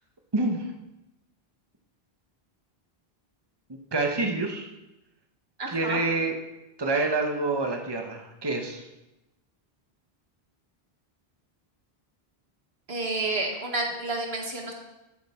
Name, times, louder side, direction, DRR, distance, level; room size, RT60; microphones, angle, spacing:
voice 1, 0.3-0.7 3.7-4.7 5.7-6.4 6.8-8.8, right 3 dB, 25° right, 3 dB, 1.1 m, -27 dB
voice 2, 5.6-6.0 12.9-14.7, right 2 dB, 80° right, 1 dB, 1.9 m, -30 dB
12.5 x 7.7 x 4.4 m, 0.96 s
omnidirectional pair, 1.0 m